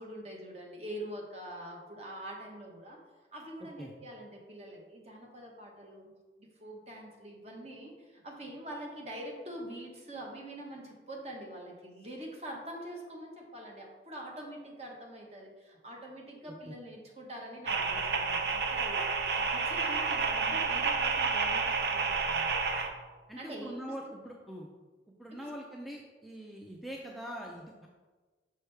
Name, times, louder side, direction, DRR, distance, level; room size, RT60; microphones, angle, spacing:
voice 1, 0.0-3.0 3.3-6.1 6.4-22.6 23.4-23.9 25.3-25.5, right 1 dB, 35° right, -1 dB, 1.2 m, -45 dB
voice 2, 16.4-16.7 23.3-24.7 25.2-27.9, equal, ahead, -2 dB, 0.4 m, -43 dB
sound 1, 17.7-22.9, right 4 dB, 70° right, 0.6 m, -30 dB
6.2 x 5.4 x 3.3 m, 1.3 s
head